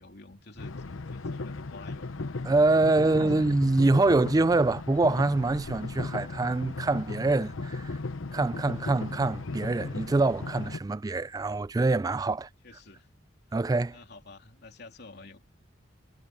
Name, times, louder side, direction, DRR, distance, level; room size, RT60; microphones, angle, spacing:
voice 1, 0.0-2.1 2.8-3.5 12.6-13.1 13.9-15.4, left 3 dB, 55° left, 3.2 m, -50 dB
sound 1, 0.6-10.8, left 3 dB, 85° left, 0.9 m, -36 dB
voice 2, 2.5-8.0 8.3-12.5 13.5-14.0, right 2 dB, 20° right, 0.3 m, -25 dB
head